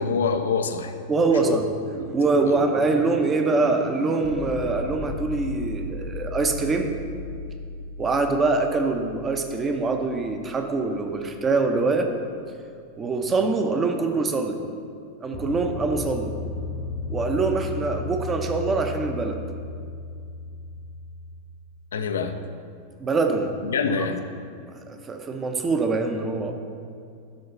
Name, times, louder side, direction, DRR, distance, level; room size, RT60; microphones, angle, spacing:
voice 1, 0.0-0.9 1.3-1.6 2.5-2.6 21.9-22.4 23.6-24.2, left 5 dB, 65° left, 8 dB, 0.6 m, -25 dB
voice 2, 1.1-1.6 2.0-6.9 8.0-12.1 13.0-14.6 15.2-16.4 17.1-19.4 23.0-23.5 24.9-26.5, right 3 dB, 20° right, 5 dB, 0.8 m, -24 dB
sound 1, 4.2-12.0 15.3-21.4, left 3 dB, 90° right, 1.5 m, -35 dB
11.5 x 3.9 x 5.5 m, 2.3 s
figure-of-eight pair, 90°, 0 cm